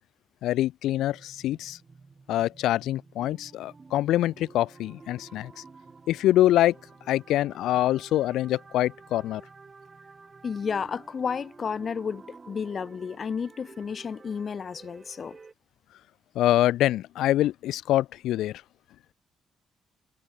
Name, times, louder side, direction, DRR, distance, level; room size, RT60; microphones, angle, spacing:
voice 1, 0.4-1.8 2.3-5.5 6.1-6.7 7.1-9.4 16.3-18.6, left 14 dB, 85° left, 1.0 m, -25 dB
sound 1, 1.1-15.5, right 4 dB, 30° right, 6.9 m, -51 dB
voice 2, 10.4-15.4, left 6 dB, 45° left, 1.5 m, -32 dB
cardioid pair, 90°, 0 cm